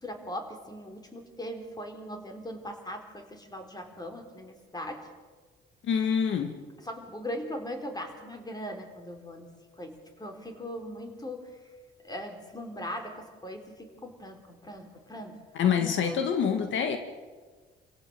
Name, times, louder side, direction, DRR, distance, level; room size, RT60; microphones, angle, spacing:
voice 1, 0.0-5.1 6.8-11.5 12.0-15.4, equal, 20° left, 4 dB, 4.4 m, -40 dB
voice 2, 5.8-6.6 15.5-17.0, left 7 dB, 75° left, 7 dB, 2.1 m, -26 dB
28.5 x 17.0 x 7.9 m, 1.4 s
cardioid pair, 90°, 20 cm